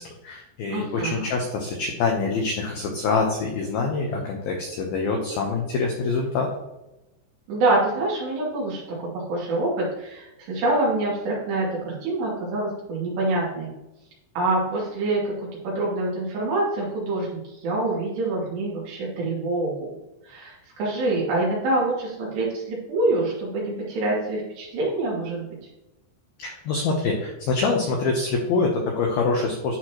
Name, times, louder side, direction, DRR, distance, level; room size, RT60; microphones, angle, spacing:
voice 1, 0.0-6.5 26.4-29.8, left 4 dB, 85° left, 1 dB, 2.1 m, -25 dB
voice 2, 0.7-1.3 7.5-8.8 9.1-13.7 14.4-19.9 20.2-25.5, right 2 dB, 65° right, -5 dB, 4.5 m, -26 dB
12.0 x 4.5 x 3.0 m, 0.97 s
omnidirectional pair, 5.6 m